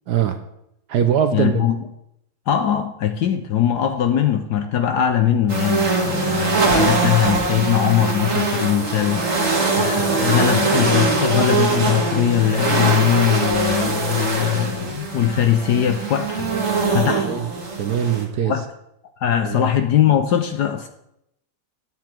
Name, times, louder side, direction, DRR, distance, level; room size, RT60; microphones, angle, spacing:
voice 1, 0.1-0.4 0.9-1.7 17.1-17.5 17.8-18.5 19.4-19.7, right 9 dB, 65° right, 8 dB, 1.1 m, -21 dB
voice 2, 1.3-1.8 2.5-9.3 9.8-16.6 16.9-17.3 18.4-18.6 19.2-20.9, left 9 dB, 65° left, 7 dB, 1.1 m, -20 dB
sound 1, 5.5-18.2, right 3 dB, 35° right, 1.9 m, -22 dB
9.6 x 9.3 x 4.5 m, 0.79 s
omnidirectional pair, 2.3 m